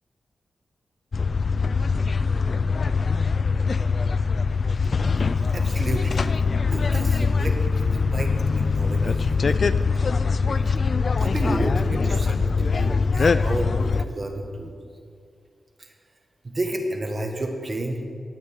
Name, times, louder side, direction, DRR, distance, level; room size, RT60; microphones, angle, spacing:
sound 1, 1.1-14.0, left 4 dB, 50° left, 0.4 m, -22 dB
voice 1, 5.5-6.3 6.7-9.7 10.7-10.8 11.2-14.7 15.8-15.9 16.4-18.0, right 1 dB, 35° right, 3 dB, 1.8 m, -30 dB
19.0 x 6.7 x 8.5 m, 2.4 s
wide cardioid pair, 135°, 0 cm